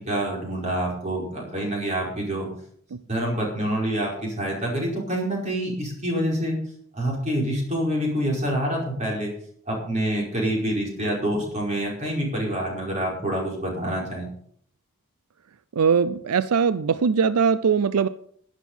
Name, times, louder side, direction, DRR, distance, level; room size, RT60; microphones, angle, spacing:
voice 1, 0.0-2.5 3.1-6.6 6.9-9.3 9.7-14.3, right 1 dB, 30° right, -2 dB, 4.9 m, -26 dB
voice 2, 15.7-18.1, right 6 dB, 85° right, 15 dB, 0.5 m, -21 dB
12.0 x 10.5 x 5.5 m, 0.62 s
head